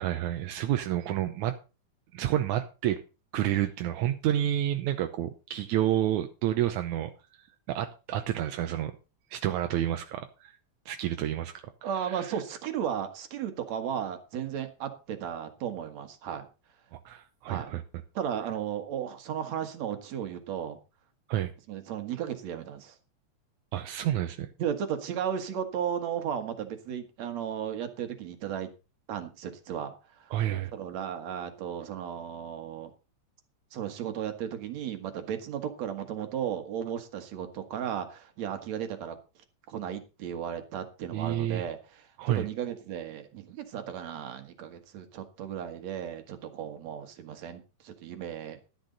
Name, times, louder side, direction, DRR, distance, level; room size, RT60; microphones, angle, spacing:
voice 1, 0.0-1.6 2.1-3.0 3.3-9.0 9.3-10.6 10.9-11.7 12.1-12.3 16.9-17.8 21.3-21.5 23.7-24.5 30.3-30.7 41.1-41.7 42.2-42.5, right 12 dB, 85° right, 2.2 m, -29 dB
voice 2, 11.8-16.5 17.5-17.7 18.1-20.8 21.7-23.0 24.6-28.7 29.1-30.3 30.7-32.9 33.7-39.2 39.7-48.6, right 9 dB, 70° right, 2.8 m, -35 dB
12.5 x 10.5 x 4.0 m
omnidirectional pair, 3.3 m